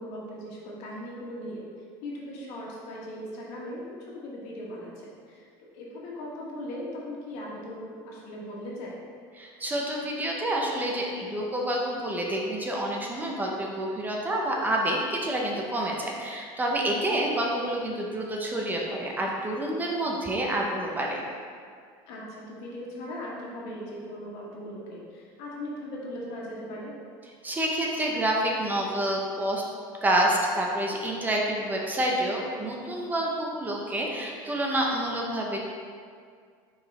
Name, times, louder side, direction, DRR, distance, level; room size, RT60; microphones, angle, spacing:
voice 1, 0.0-1.6 2.0-9.0 16.8-17.1 22.1-26.9, left 1 dB, 70° left, -4 dB, 1.6 m, -39 dB
voice 2, 9.3-21.2 27.4-29.6 30.0-35.6, right 1 dB, 15° right, -1 dB, 0.7 m, -28 dB
5.4 x 4.8 x 4.1 m, 2.1 s
cardioid pair, 150°, 11 cm